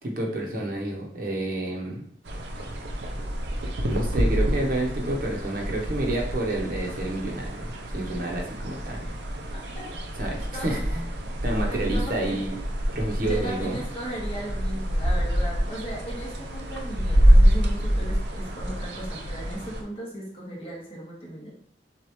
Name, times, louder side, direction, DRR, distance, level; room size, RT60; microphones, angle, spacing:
voice 1, 0.0-2.0 3.9-9.1 10.2-11.0 11.4-12.6 12.9-13.8, right 1 dB, 55° right, -1 dB, 0.9 m, -29 dB
sound 1, 2.3-19.8, equal, 75° right, 0.7 m, -26 dB
voice 2, 11.7-12.4 13.2-21.5, right 1 dB, 30° left, -4 dB, 1.5 m, -37 dB
6.3 x 2.5 x 3.1 m, 0.62 s
head